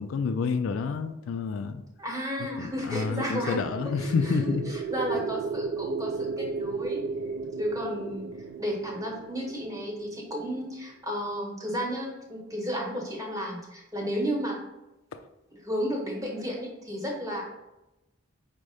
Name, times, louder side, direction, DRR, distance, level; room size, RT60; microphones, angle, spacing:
voice 1, 0.0-1.8 2.6-4.7 15.1-15.2, left 5 dB, 80° left, 8 dB, 0.3 m, -29 dB
voice 2, 2.0-3.6 4.0-7.1 7.6-8.3 8.6-14.6 15.6-17.4, equal, 15° right, -2 dB, 1.0 m, -33 dB
sound 1, 2.7-10.8, right 4 dB, 70° right, 0.3 m, -35 dB
5.2 x 2.1 x 4.8 m, 0.95 s
head